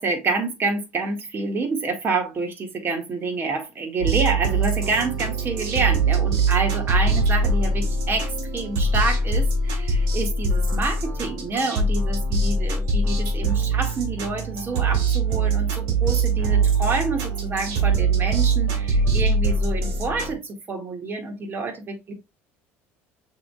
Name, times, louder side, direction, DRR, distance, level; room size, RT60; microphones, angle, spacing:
voice 1, 0.0-22.1, right 3 dB, 35° right, 1.8 m, -28 dB
sound 1, 4.0-20.4, right 3 dB, 75° right, 1.8 m, -22 dB
6.7 x 3.4 x 2.3 m
supercardioid pair, 80°, 6 cm